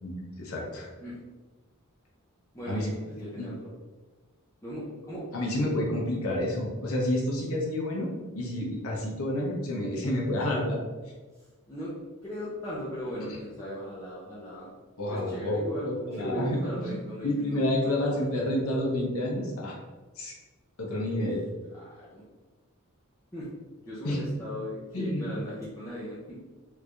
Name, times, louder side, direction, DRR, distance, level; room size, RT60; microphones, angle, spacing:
voice 1, 0.0-0.9 2.7-2.9 3.4-3.5 5.3-8.1 8.3-10.8 13.3-13.4 15.0-16.9 17.2-19.8 20.2-20.3 20.8-21.4 24.0-24.2 24.9-25.2, left 1 dB, 80° left, -2 dB, 0.7 m, -29 dB
voice 2, 2.5-3.7 4.6-5.2 11.7-11.9 12.2-14.7 15.1-18.5 21.2-21.3 21.9-22.2 23.3-23.5 23.8-26.4, equal, 15° left, -10 dB, 0.7 m, -37 dB
3.2 x 2.6 x 3.3 m, 1.3 s
head